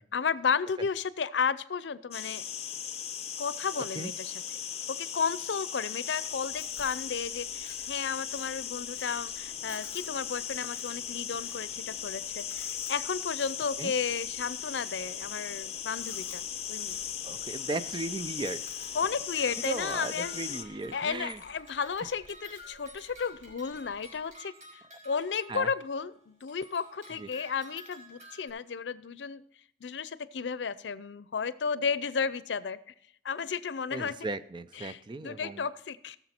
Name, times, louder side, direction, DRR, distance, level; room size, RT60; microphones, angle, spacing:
voice 1, 0.1-2.4 3.4-4.3 4.9-17.0 18.9-20.5 20.9-29.4 29.8-32.8 33.2-34.1 34.8-36.2, left 6 dB, 85° left, 16 dB, 0.5 m, -33 dB
sound 1, 2.1-20.6, left 9 dB, 35° left, 0.8 m, -38 dB
Chewing mastication, 6.2-24.3, left 4 dB, 15° left, 1.5 m, -57 dB
voice 2, 16.9-18.6 19.6-21.4 25.5-25.7 27.1-27.3 33.9-35.7, right 2 dB, 25° right, 13 dB, 0.4 m, -37 dB
sound 2, 18.6-26.0 26.4-28.5, equal, 45° right, 4.3 m, -51 dB
17.5 x 7.0 x 4.4 m, 0.69 s
head